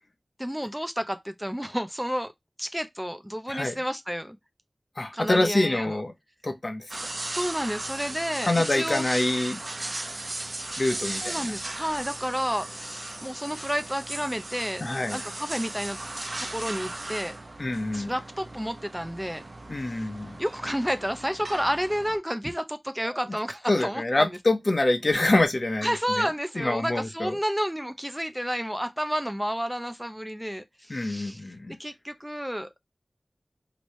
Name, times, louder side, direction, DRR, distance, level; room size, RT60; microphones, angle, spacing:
voice 1, 0.4-2.3 2.6-4.4 5.1-6.0 7.3-9.1 11.1-16.0 16.4-17.4 17.9-19.4 19.7-20.1 20.4-24.4 25.8-31.4 31.8-32.7, equal, 5° right, 0.5 m, -31 dB
voice 2, 3.5-3.8 5.0-6.1 6.4-7.1 8.4-9.6 10.8-11.4 14.8-15.2 17.6-18.1 19.7-20.4 23.7-25.9 26.2-26.3 26.6-27.4 30.9-31.8, left 2 dB, 50° left, 0.8 m, -26 dB
sound 1, 6.9-22.2, right 2 dB, 55° right, 0.7 m, -37 dB
3.0 x 2.7 x 3.0 m
wide cardioid pair, 55°, 0 cm